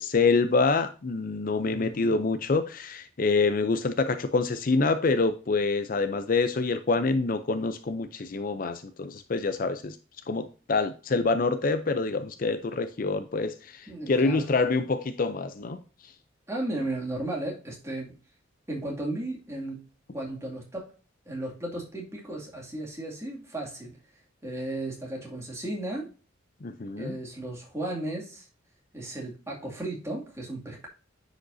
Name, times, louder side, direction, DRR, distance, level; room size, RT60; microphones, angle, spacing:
voice 1, 0.0-10.0 10.3-15.8 26.6-27.2, left 3 dB, 45° left, 10 dB, 0.5 m, -26 dB
voice 2, 1.6-2.2 13.9-14.5 16.5-18.2 18.7-19.8 20.1-20.9 21.3-24.0 24.4-26.1 27.0-28.5 28.9-30.9, right 1 dB, 15° right, -2 dB, 2.3 m, -35 dB
10.0 x 5.1 x 2.7 m, 0.36 s
head